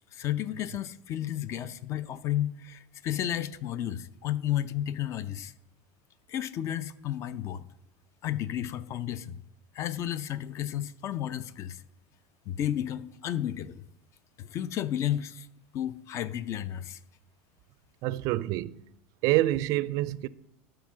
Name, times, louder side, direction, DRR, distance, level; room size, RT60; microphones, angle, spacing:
voice 1, 0.1-5.5 6.3-7.6 8.2-9.4 9.7-11.8 12.5-13.8 14.4-15.5 15.7-17.0, left 11 dB, 40° left, 0.5 m, -32 dB
voice 2, 18.0-18.8 19.2-20.3, right 16 dB, 55° right, 0.4 m, -27 dB
12.0 x 4.8 x 6.2 m
supercardioid pair, 125°, 7 cm